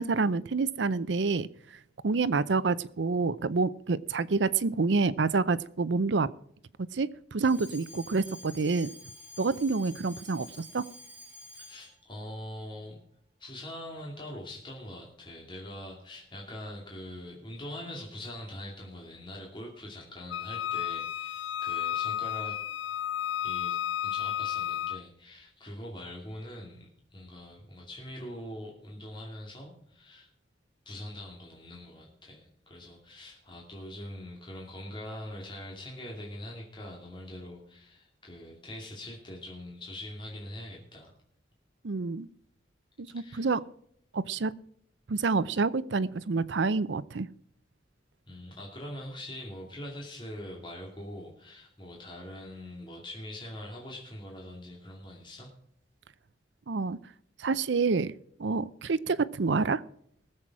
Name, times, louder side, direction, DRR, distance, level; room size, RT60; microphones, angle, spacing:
voice 1, 0.0-1.5 2.0-6.3 6.9-8.9 9.4-10.9 41.8-42.3 43.0-43.6 44.1-44.5 45.1-47.3 56.7-57.0 57.4-58.1 58.4-59.8, right 4 dB, 70° right, 17 dB, 0.6 m, -28 dB
Alarm, 7.4-12.0, left 2 dB, 10° right, 2.3 m, -49 dB
voice 2, 11.5-13.0 13.4-22.6 23.4-30.3 30.9-41.1 43.2-43.5 48.3-55.5, left 1 dB, 25° left, -2 dB, 2.5 m, -43 dB
Wind instrument woodwind instrument, 20.3-25.0, left 10 dB, 75° left, 0.4 m, -32 dB
19.5 x 7.6 x 4.7 m, 0.68 s
head